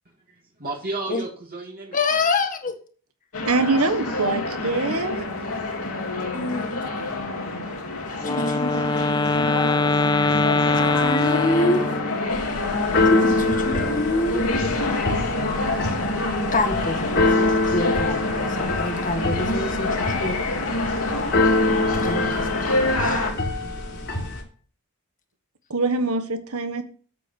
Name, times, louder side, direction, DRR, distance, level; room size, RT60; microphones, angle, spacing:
voice 1, 0.3-2.3, right 2 dB, 40° right, -2 dB, 2.4 m, -33 dB
voice 2, 1.9-2.7 6.3-6.8 8.2-9.3 11.0-11.9 13.0-14.4 16.5-20.4 22.0-23.2, left 2 dB, 35° left, 7 dB, 1.7 m, -27 dB
sound 1, 3.3-23.3, left 2 dB, 70° left, 3.0 m, -27 dB
voice 3, 3.5-5.3 25.7-26.8, right 3 dB, 75° right, 9 dB, 1.5 m, -24 dB
Wind instrument woodwind instrument, 8.2-12.3, left 3 dB, 20° left, 0.5 m, -22 dB
Keyboard (musical), 12.3-24.4, left 2 dB, 50° left, 3.2 m, -25 dB
9.0 x 8.2 x 5.5 m, 0.43 s
head